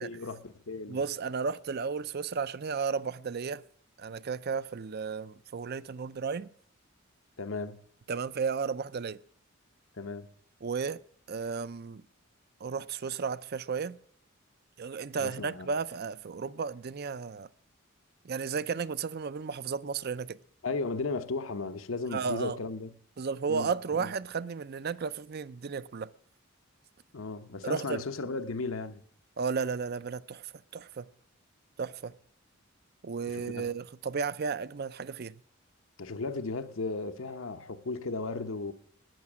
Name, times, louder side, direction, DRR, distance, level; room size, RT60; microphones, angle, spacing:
voice 1, 0.0-1.0 7.4-7.8 10.0-10.3 15.2-15.7 20.6-22.9 23.5-24.1 27.1-29.0 33.3-33.7 36.0-38.7, left 3 dB, 75° left, 0.9 m, -35 dB
voice 2, 0.9-3.6 4.0-6.5 8.1-9.2 10.6-12.0 12.6-14.0 14.8-17.5 18.2-20.4 22.1-22.6 23.2-26.1 27.6-28.0 29.4-31.1 31.8-32.2 33.0-35.3, right 5 dB, 50° right, 0.5 m, -33 dB
14.0 x 9.7 x 6.1 m
head